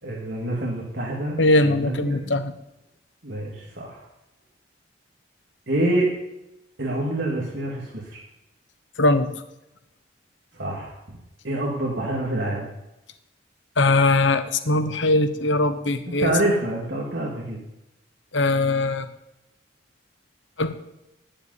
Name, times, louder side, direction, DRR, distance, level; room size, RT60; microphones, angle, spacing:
voice 1, 0.0-2.4 3.2-4.0 5.7-6.1 6.8-8.2 10.5-11.0 11.4-12.7 16.2-17.6, right 1 dB, 65° right, -3 dB, 2.4 m, -26 dB
voice 2, 1.4-2.5 9.0-9.3 13.8-16.3 18.3-19.1 20.6-20.7, left 2 dB, 75° left, 10 dB, 1.0 m, -20 dB
10.0 x 8.1 x 9.5 m, 0.90 s
head